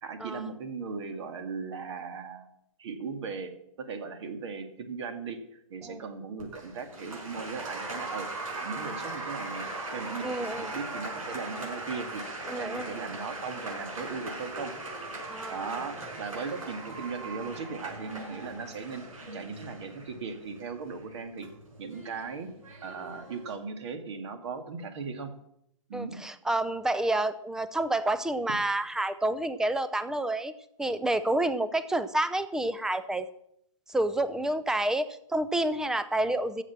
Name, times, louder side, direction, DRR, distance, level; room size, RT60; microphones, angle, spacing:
voice 1, 0.0-2.5 2.8-3.5 3.8-12.2 12.6-14.7 15.5-19.0 19.3-21.5 21.8-22.5 22.8-25.3 25.9-26.2, right 5 dB, 55° right, 8 dB, 2.2 m, -38 dB
Applause, 6.4-23.5, right 2 dB, 75° right, 6.1 m, -39 dB
voice 2, 10.2-10.7 12.5-12.9 15.3-15.8 25.9-30.5 30.8-33.3 33.9-36.6, right 1 dB, 5° right, 14 dB, 0.5 m, -29 dB
14.5 x 7.7 x 7.3 m, 0.74 s
hypercardioid pair, 135°, 18 cm